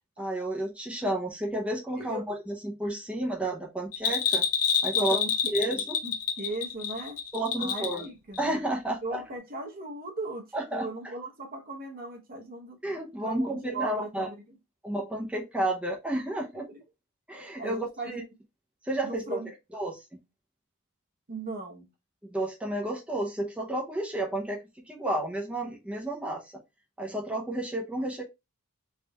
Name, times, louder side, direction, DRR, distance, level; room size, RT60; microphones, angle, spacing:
voice 1, 0.2-4.4 4.8-5.2 5.5-6.0 7.3-8.1 8.4-9.2 10.5-10.9 12.8-14.3 14.8-16.7 17.3-18.2 18.8-19.4 19.7-20.0 22.3-26.5 27.0-28.2, right 1 dB, 5° right, 0.6 m, -31 dB
Bell, 3.9-8.1 8.3-8.4, left 7 dB, 80° left, 1.0 m, -27 dB
voice 2, 4.9-5.5 6.0-7.2 7.6-8.6 9.0-12.8 13.2-14.4 16.7-16.8 17.6-18.1 19.0-19.5 21.3-21.9, right 2 dB, 40° right, 0.9 m, -37 dB
4.0 x 3.5 x 2.2 m
head